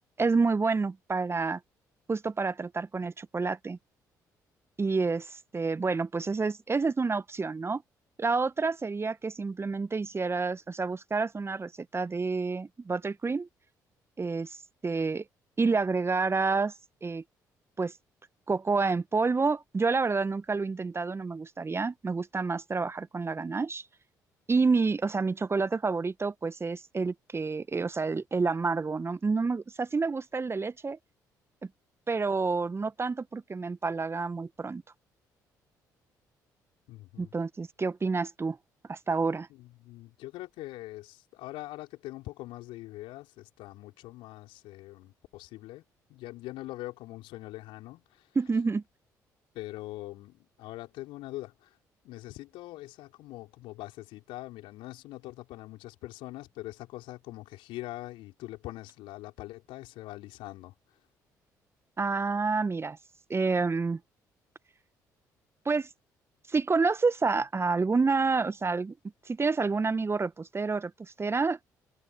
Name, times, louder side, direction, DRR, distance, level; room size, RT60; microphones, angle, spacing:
voice 1, 0.2-1.6 2.1-3.8 4.8-7.8 8.2-13.5 14.2-14.6 14.8-15.2 15.6-16.7 17.0-17.2 17.8-17.9 18.5-23.8 24.5-31.0 32.1-34.8 37.2-38.6 38.9-39.5 48.3-48.8 62.0-63.0 63.3-64.0 65.6-65.9 66.5-68.9 69.3-70.9 71.2-71.6, right 4 dB, 25° right, 1.5 m, -28 dB
voice 2, 36.9-37.3 39.5-45.8 46.1-48.3 49.5-51.8 52.0-60.7, left 18 dB, 65° left, 5.2 m, -43 dB
figure-of-eight pair, 45°, 9 cm